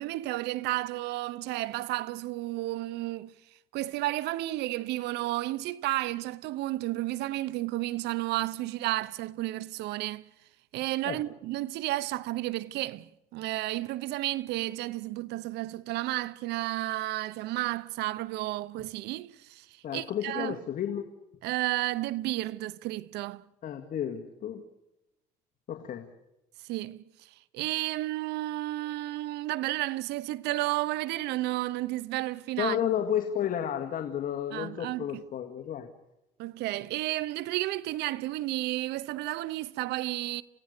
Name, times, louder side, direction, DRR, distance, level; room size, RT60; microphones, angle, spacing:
voice 1, 0.0-3.3 3.7-10.3 10.7-20.6 21.4-23.4 26.6-32.8 34.5-35.2 36.4-40.4, right 17 dB, 85° right, 0.8 m, -32 dB
voice 2, 19.8-21.1 23.6-24.6 25.7-26.1 32.6-35.9, left 9 dB, 55° left, 2.0 m, -32 dB
29.0 x 16.5 x 6.7 m
cardioid pair, 110°, 17 cm